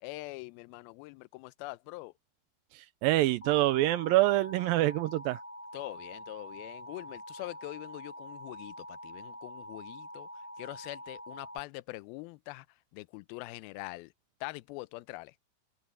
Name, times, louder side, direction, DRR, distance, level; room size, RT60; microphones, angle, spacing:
voice 1, 0.0-2.1 5.7-10.3 10.6-12.7 12.9-14.1 14.4-15.3, left 21 dB, 85° left, 2.4 m, -43 dB
voice 2, 2.7-5.4, right 17 dB, 80° right, 2.1 m, -26 dB
Alarm, 3.4-11.6, equal, 10° left, 0.8 m, -46 dB
open air
omnidirectional pair, 4.5 m